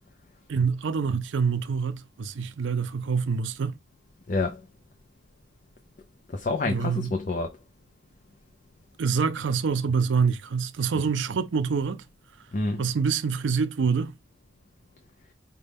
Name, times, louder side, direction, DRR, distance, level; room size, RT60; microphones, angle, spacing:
voice 1, 0.5-3.8 6.6-7.1 9.0-12.0 12.8-14.1, right 5 dB, 75° right, 0.5 m, -26 dB
voice 2, 4.3-4.6 6.3-7.6 10.9-11.1 12.5-12.9, left 3 dB, 45° left, 0.5 m, -28 dB
5.2 x 2.2 x 3.4 m
head